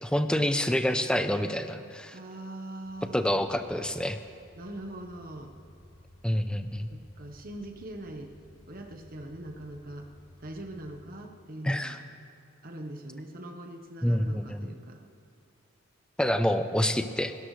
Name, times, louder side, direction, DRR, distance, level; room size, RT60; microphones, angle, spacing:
voice 1, 0.0-2.2 3.1-4.2 6.2-6.9 11.6-12.0 14.0-14.7 16.2-17.3, equal, 5° left, 9 dB, 0.6 m, -27 dB
voice 2, 2.1-3.4 4.6-5.5 6.9-8.3 8.7-10.1 10.4-12.0 12.6-15.0, right 1 dB, 45° right, 4 dB, 1.1 m, -42 dB
sound 1, 2.8-11.0, left 1 dB, 75° left, 1.4 m, -55 dB
29.0 x 12.5 x 3.3 m, 2.5 s
head